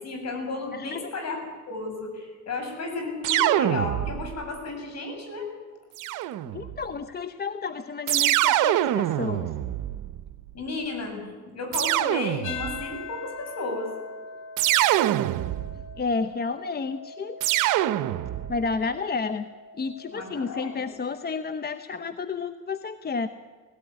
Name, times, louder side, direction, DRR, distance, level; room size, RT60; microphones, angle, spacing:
voice 1, 0.0-1.4 1.7-5.5 10.5-11.2 11.5-13.9 20.1-20.9, left 3 dB, 60° left, 4 dB, 7.2 m, -33 dB
sound 1, 3.2-4.4 6.0-6.8 8.1-10.4 11.7-12.8 14.6-15.9 17.4-18.6, right 14 dB, 90° right, 0.8 m, -24 dB
voice 2, 6.4-9.5 16.0-17.4 18.5-19.5 19.7-23.3, left 4 dB, 30° left, 10 dB, 0.9 m, -31 dB
sound 2, 12.4-20.9, left 5 dB, 80° left, 3.2 m, -42 dB
18.0 x 17.0 x 9.6 m, 1.5 s
cardioid pair, 90°, 30 cm